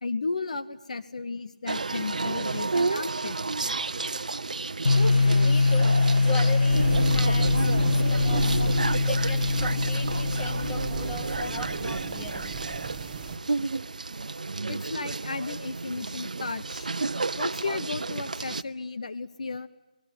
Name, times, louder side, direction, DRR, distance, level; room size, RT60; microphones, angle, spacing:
voice 1, 0.0-3.4 5.8-5.9 7.5-7.7 8.6-8.7 11.0-11.1 11.4-11.5 14.7-16.9 17.4-19.7, left 4 dB, 55° left, 12 dB, 1.1 m, -34 dB
sound 1, 1.7-18.6, right 3 dB, 65° right, 0.9 m, -32 dB
sound 2, 4.9-11.7, left 3 dB, 80° left, 1.0 m, -23 dB
voice 2, 5.3-8.6 9.0-12.6, left 2 dB, 10° left, 1 dB, 2.4 m, -39 dB
sound 3, 6.7-13.4, right 5 dB, 15° right, 1.6 m, -34 dB
25.5 x 21.0 x 9.8 m, 1.1 s
figure-of-eight pair, 165°, 4 cm